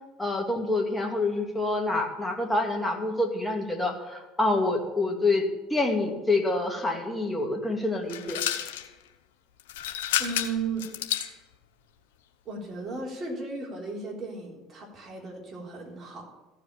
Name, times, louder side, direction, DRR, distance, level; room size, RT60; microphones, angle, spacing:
voice 1, 0.2-5.4 5.7-8.4, left 2 dB, 10° left, 1 dB, 2.3 m, -27 dB
sound 1, 8.1-8.9 9.6-11.3, left 12 dB, 90° left, 0.8 m, -30 dB
voice 2, 10.2-10.8 12.5-16.3, right 4 dB, 40° right, -1 dB, 3.7 m, -35 dB
14.5 x 5.1 x 8.9 m, 1.1 s
supercardioid pair, 90°, 0 cm